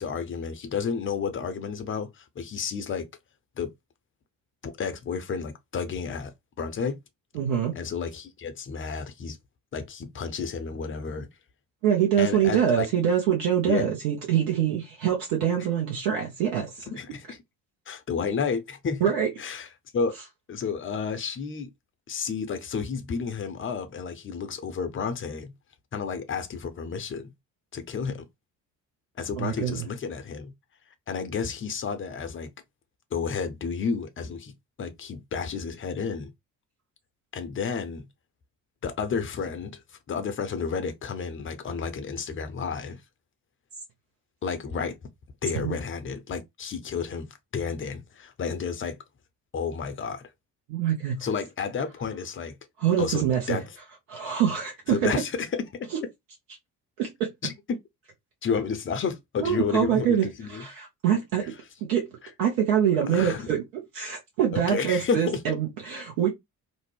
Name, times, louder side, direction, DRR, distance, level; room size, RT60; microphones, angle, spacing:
voice 1, 0.0-3.1 3.6-3.7 4.6-6.3 6.6-7.0 7.7-9.4 9.7-11.3 12.2-12.9 13.7-13.9 16.9-17.4 17.9-19.0 19.4-19.7 19.9-20.1 20.5-21.7 22.1-25.5 25.9-27.3 27.7-28.2 29.2-30.5 31.1-32.5 33.1-34.5 34.8-36.3 37.3-38.1 38.8-39.8 40.1-43.0 44.4-45.0 45.4-49.0 49.5-50.2 51.2-52.6 53.0-53.7 54.9-55.9 57.4-57.5 58.4-60.6 63.1-63.5 64.7-65.6, left 5 dB, 25° left, 0.6 m, -31 dB
voice 2, 7.3-7.7 11.8-16.9 19.0-19.3 29.4-29.8 45.6-45.7 50.7-51.2 52.8-53.6 54.1-55.1 57.0-57.3 59.4-61.5 61.9-62.0 62.4-63.6 63.9-66.3, right 9 dB, 65° right, 0.9 m, -25 dB
2.6 x 2.0 x 3.1 m
figure-of-eight pair, 45°, 49 cm